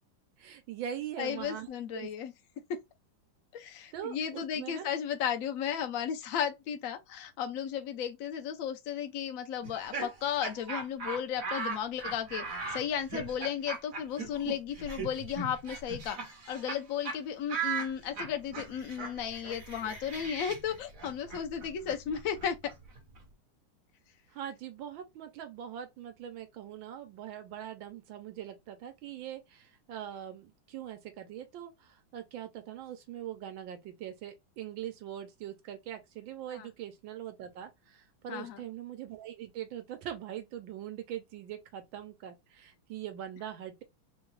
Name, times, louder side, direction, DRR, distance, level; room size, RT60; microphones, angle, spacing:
voice 1, 0.4-2.1 3.9-4.9 24.3-43.8, right 10 dB, 75° right, 1.4 m, -42 dB
voice 2, 1.2-2.3 2.7-2.8 3.5-16.2 16.5-22.6 36.5-36.7 38.3-38.6, left 8 dB, 80° left, 0.7 m, -34 dB
Laughter, 9.6-16.8 17.0-17.2 17.5-23.2, right 4 dB, 45° right, 1.4 m, -39 dB
3.8 x 2.2 x 3.1 m
omnidirectional pair, 2.3 m